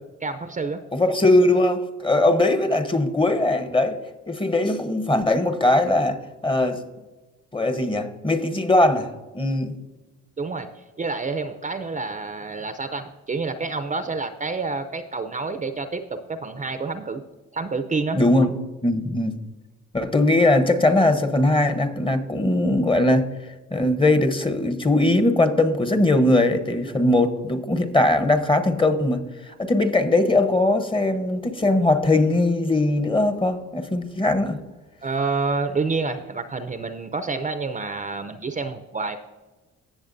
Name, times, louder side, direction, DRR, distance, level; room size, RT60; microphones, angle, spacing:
voice 1, 0.2-0.8 10.4-16.0 16.3-17.2 17.5-18.2 35.0-39.2, right 4 dB, 25° right, 9 dB, 0.6 m, -28 dB
voice 2, 0.9-4.0 4.3-6.2 6.4-6.8 7.5-9.1 9.3-9.8 18.1-18.5 18.8-19.4 19.9-23.3 23.7-29.2 29.6-34.6, left 2 dB, 15° left, 10 dB, 0.9 m, -20 dB
16.5 x 6.8 x 2.6 m, 1.2 s
cardioid pair, 90°, 30 cm